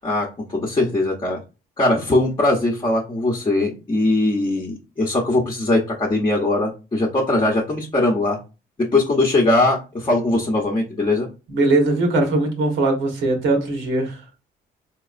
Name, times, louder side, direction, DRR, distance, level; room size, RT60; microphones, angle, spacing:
voice 1, 0.0-1.4 1.8-8.4 8.9-11.3, left 2 dB, 25° left, 0.8 m, -20 dB
voice 2, 11.5-14.2, right 2 dB, 80° right, 1.2 m, -20 dB
4.0 x 2.9 x 2.4 m
cardioid pair, 90°, 20 cm